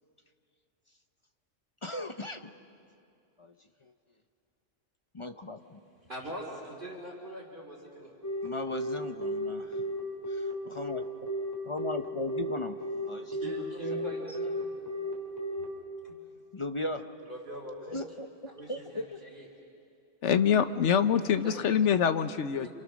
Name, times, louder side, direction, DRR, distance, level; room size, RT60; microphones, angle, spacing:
voice 1, 1.8-2.5 3.4-3.5 3.8-3.9 5.1-5.8 8.4-9.8 10.3-11.0 11.7-12.8 13.1-13.8 15.0-15.1 16.5-17.1 17.9-18.3 18.7-19.2, left 2 dB, 30° left, 7 dB, 0.7 m, -37 dB
voice 2, 6.1-8.2 13.4-14.8 16.0-16.2 17.2-18.1 18.5-19.5 20.8-21.6 22.6-22.7, right 1 dB, 40° right, -3 dB, 3.3 m, -42 dB
Telephone, 8.2-15.6, equal, 15° left, 4.2 m, -33 dB
voice 3, 20.2-22.7, left 8 dB, 70° left, 11 dB, 1.2 m, -25 dB
28.5 x 27.0 x 6.3 m, 2.5 s
omnidirectional pair, 1.3 m